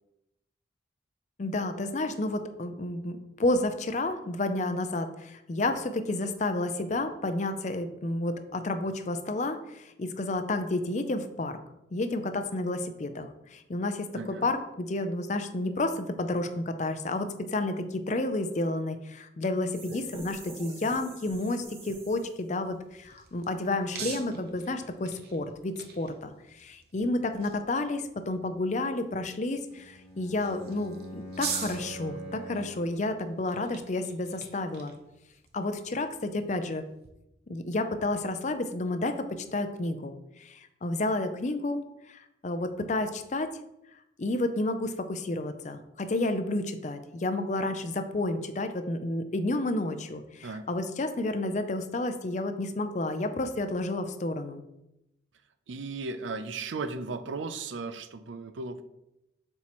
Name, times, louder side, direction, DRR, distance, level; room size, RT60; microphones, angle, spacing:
voice 1, 1.4-11.6 11.9-34.9 35.5-36.8 37.5-43.5 44.2-54.6, left 2 dB, 40° left, 9 dB, 0.5 m, -31 dB
voice 2, 14.1-14.5 24.0-24.5 50.4-50.7 55.7-58.8, right 3 dB, 85° right, 11 dB, 0.5 m, -36 dB
sound 1, 19.7-22.5, right 2 dB, 30° right, 1.1 m, -45 dB
sound 2, 22.6-37.1, right 6 dB, 55° right, 0.8 m, -44 dB
Bowed string instrument, 29.7-32.9, right 1 dB, 5° right, 2.2 m, -43 dB
7.3 x 4.4 x 3.0 m, 0.87 s
head